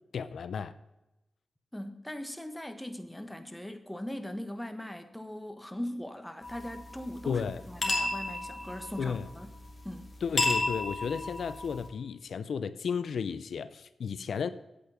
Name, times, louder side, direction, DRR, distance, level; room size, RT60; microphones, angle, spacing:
voice 1, 0.1-0.7 7.3-7.6 9.0-9.3 10.2-14.5, left 6 dB, 80° left, 0.5 m, -33 dB
voice 2, 1.7-9.5 9.8-10.1, left 1 dB, 5° left, 1.3 m, -40 dB
sound 1, 6.4-11.9, left 2 dB, 35° left, 2.7 m, -34 dB
8.6 x 8.5 x 5.8 m
cardioid pair, 70°, 0 cm